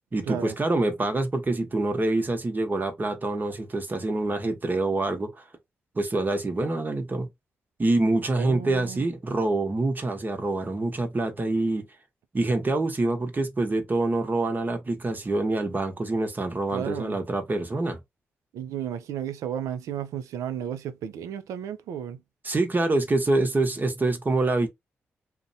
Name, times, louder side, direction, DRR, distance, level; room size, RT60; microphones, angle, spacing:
voice 1, 0.1-5.4 5.9-7.3 7.8-11.9 12.3-18.0 22.4-24.7, right 2 dB, 35° right, 0.9 m, -26 dB
voice 2, 8.4-9.1 16.7-17.2 18.5-22.2, right 9 dB, 80° right, 0.4 m, -33 dB
2.5 x 2.1 x 2.7 m
supercardioid pair, 45°, 5 cm